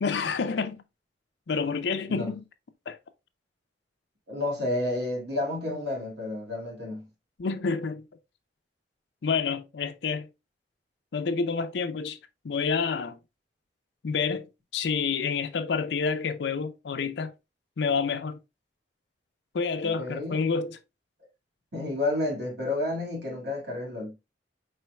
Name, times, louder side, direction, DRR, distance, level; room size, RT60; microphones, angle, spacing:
voice 1, 0.0-0.8 1.5-2.4 2.9-3.0 7.4-8.1 9.2-10.3 11.1-12.2 12.4-13.2 14.0-14.5 14.7-17.3 17.8-18.4 19.5-20.8, left 5 dB, 70° left, 0.5 m, -28 dB
voice 2, 4.3-7.1 19.8-20.4 21.7-24.1, left 2 dB, 65° right, 1.9 m, -30 dB
4.9 x 4.3 x 2.2 m
head